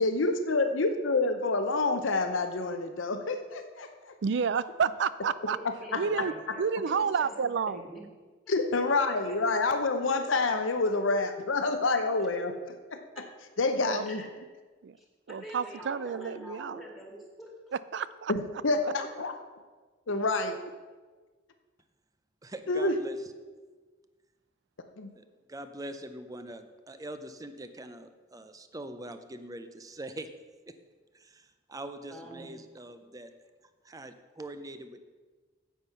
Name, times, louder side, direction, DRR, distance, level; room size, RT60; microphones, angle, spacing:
voice 1, 0.0-4.1 5.9-6.0 8.5-12.5 13.6-14.2 18.3-18.4 18.6-19.4 20.1-20.5 22.7-23.0 25.0-25.1, left 3 dB, 85° left, 7 dB, 0.8 m, -27 dB
voice 2, 4.2-5.6 6.0-6.3 6.6-7.8 13.9-14.1 14.8-15.0 15.3-16.8 17.9-18.3 18.8-18.9, right 6 dB, 65° right, 16 dB, 0.4 m, -30 dB
voice 3, 5.5-7.3 7.7-8.0 8.5-8.8 12.2-12.3 14.1-14.3 15.0-17.5 32.1-32.5, equal, ahead, -1 dB, 2.2 m, -46 dB
voice 4, 22.4-23.2 25.2-25.3 25.5-30.3 30.7-30.8 31.1-33.3 33.8-35.1, right 1 dB, 20° right, 9 dB, 0.6 m, -43 dB
9.2 x 8.2 x 5.6 m, 1.4 s
head